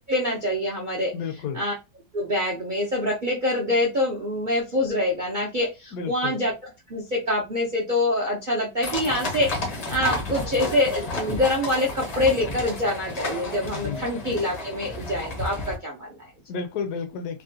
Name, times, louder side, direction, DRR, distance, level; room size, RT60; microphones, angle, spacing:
voice 1, 0.1-1.1 1.5-1.7 2.1-6.5 6.9-16.3, left 1 dB, 65° right, 0.4 m, -25 dB
voice 2, 1.1-1.6 5.9-6.4 13.7-14.1 16.5-17.4, left 6 dB, 70° left, 1.0 m, -31 dB
sound 1, 8.8-15.8, left 2 dB, 45° left, 0.5 m, -32 dB
3.6 x 2.1 x 2.7 m
omnidirectional pair, 1.8 m